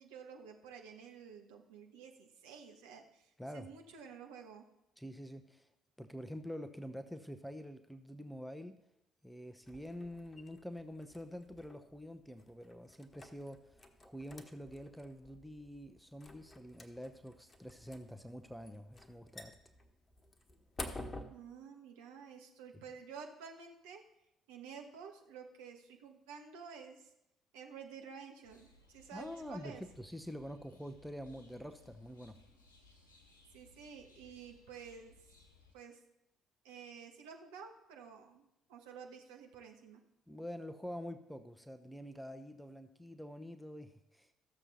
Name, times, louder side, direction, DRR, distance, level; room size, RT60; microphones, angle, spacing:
voice 1, 0.0-4.6 21.3-24.0 24.5-27.1 27.5-29.8 33.5-35.3 35.7-36.0 36.6-40.0, right 6 dB, 70° right, 3 dB, 1.3 m, -51 dB
voice 2, 3.4-3.7 5.0-5.7 6.0-8.8 9.2-19.6 29.1-32.4 40.3-44.3, equal, ahead, 8 dB, 0.8 m, -47 dB
sound 1, 9.6-21.2, left 2 dB, 25° left, 1.3 m, -52 dB
sound 2, 28.4-35.7, left 2 dB, 80° left, 1.3 m, -64 dB
14.0 x 7.2 x 4.2 m, 0.84 s
figure-of-eight pair, 45°, 0 cm